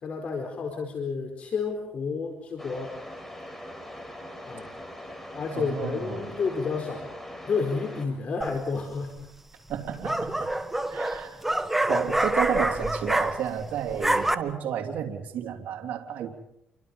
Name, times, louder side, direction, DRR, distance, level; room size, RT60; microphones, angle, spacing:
voice 1, 0.0-2.9 4.5-4.7 5.3-7.1 7.4-9.3, left 5 dB, 45° left, 3 dB, 4.6 m, -30 dB
sound 1, 2.6-8.1, left 1 dB, 10° left, 4.7 m, -41 dB
voice 2, 5.5-6.3 9.7-10.5 10.9-11.4 11.9-16.3, right 8 dB, 65° right, 2 dB, 3.2 m, -31 dB
sound 2, 8.4-8.8 9.7-13.6 13.9-14.3, right 1 dB, 5° right, 1.6 m, -26 dB
28.5 x 24.5 x 5.5 m, 0.79 s
cardioid pair, 110°, 3 cm